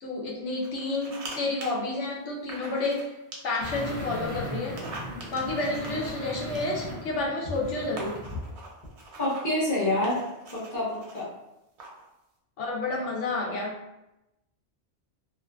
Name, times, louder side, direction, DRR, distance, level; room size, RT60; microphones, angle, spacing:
voice 1, 0.0-3.1 3.4-4.8 5.3-8.2 12.6-13.8, left 2 dB, 85° left, -3 dB, 1.0 m, -30 dB
sound 1, 0.6-1.3 1.6-1.7 2.5-3.1 3.3-3.9 4.6-7.0 7.6-7.7 8.0-9.5 10.0-11.2 11.8-12.1, right 3 dB, 75° right, 0.9 m, -43 dB
sound 2, 3.6-8.5 8.8-8.9, left 2 dB, 65° left, 1.1 m, -37 dB
voice 2, 9.2-10.2 10.5-11.3, left 1 dB, 20° left, -6 dB, 0.7 m, -27 dB
2.6 x 2.5 x 2.2 m, 0.93 s
omnidirectional pair, 1.2 m